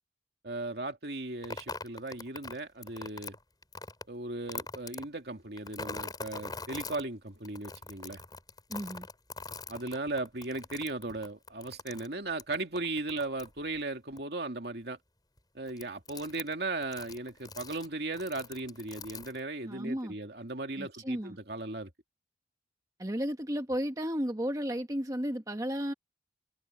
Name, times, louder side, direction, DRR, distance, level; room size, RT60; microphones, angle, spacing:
voice 1, 0.4-3.3 4.1-8.2 9.7-15.0 15.5-21.9, right 2 dB, 60° right, 2.6 m, -37 dB
sound 1, 1.4-4.0 4.5-5.0 5.6-7.0 7.4-13.8 14.2-14.3 15.4-15.5 15.7-16.5 16.8-17.9 18.1-19.4, left 4 dB, 20° left, 6.0 m, -42 dB
voice 2, 8.7-9.1 19.6-20.1 20.8-21.4 23.0-25.9, equal, 20° right, 1.3 m, -33 dB
head